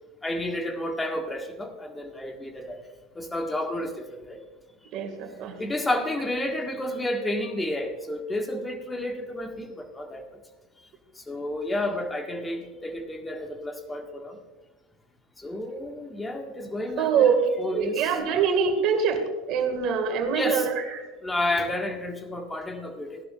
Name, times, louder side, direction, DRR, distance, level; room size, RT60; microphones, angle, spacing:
voice 1, 0.2-2.8 3.1-3.9 4.3-4.4 5.6-10.2 11.3-14.4 15.4-18.2 20.3-20.7 21.2-23.2, left 1 dB, 15° left, 4 dB, 1.7 m, -31 dB
voice 2, 4.9-5.6 17.0-19.2 19.5-21.0, right 6 dB, 55° right, 6 dB, 2.1 m, -24 dB
16.5 x 11.5 x 2.5 m, 1.3 s
hypercardioid pair, 85°, 0 cm